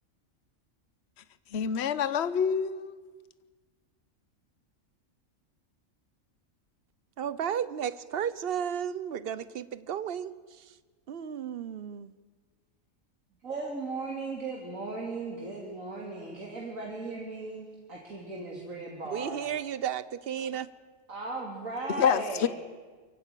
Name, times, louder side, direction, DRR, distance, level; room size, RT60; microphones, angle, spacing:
voice 1, 1.5-3.0 22.0-22.5, left 7 dB, 55° left, 1.1 m, -27 dB
voice 2, 7.2-10.7 11.1-12.1 19.1-20.7, right 9 dB, 50° right, 1.0 m, -33 dB
voice 3, 13.4-19.4 21.1-22.5, right 3 dB, 85° right, 3.2 m, -37 dB
24.0 x 16.5 x 9.2 m
omnidirectional pair, 1.4 m